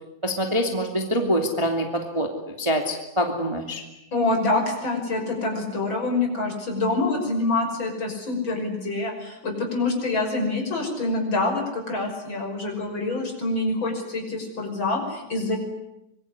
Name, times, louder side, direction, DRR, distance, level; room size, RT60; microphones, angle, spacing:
voice 1, 0.2-2.3 2.6-3.8, equal, 10° right, 3 dB, 2.4 m, -25 dB
voice 2, 4.1-15.6, left 2 dB, 40° left, 2 dB, 6.7 m, -26 dB
25.5 x 22.5 x 9.9 m, 0.88 s
omnidirectional pair, 3.3 m